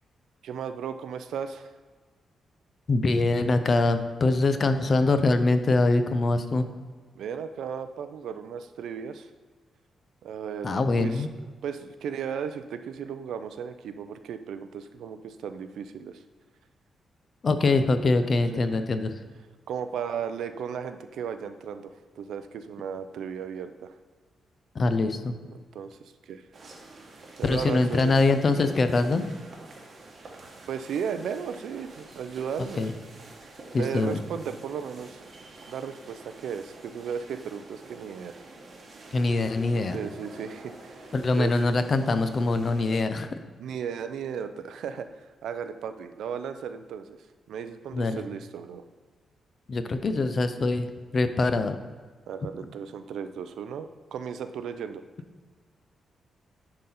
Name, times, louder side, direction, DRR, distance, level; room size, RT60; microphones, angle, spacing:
voice 1, 0.4-1.7 7.2-9.3 10.2-11.3 11.6-16.2 19.7-23.9 25.5-26.4 27.4-28.1 30.7-32.8 33.8-35.2 35.7-38.4 39.9-41.0 41.4-41.5 43.6-45.1 45.4-47.2 47.5-48.8 52.3-55.0, right 7 dB, 80° right, 10 dB, 0.4 m, -35 dB
voice 2, 2.9-6.7 10.6-11.3 17.4-19.2 24.7-25.3 27.4-29.3 32.6-32.9 33.7-34.2 39.1-40.0 41.1-43.3 47.9-48.2 49.7-51.8, left 3 dB, 35° left, 9 dB, 0.5 m, -24 dB
sound 1, 26.5-43.0, right 2 dB, 40° right, 1.0 m, -47 dB
10.5 x 3.9 x 4.2 m, 1.4 s
wide cardioid pair, 155°, 0 cm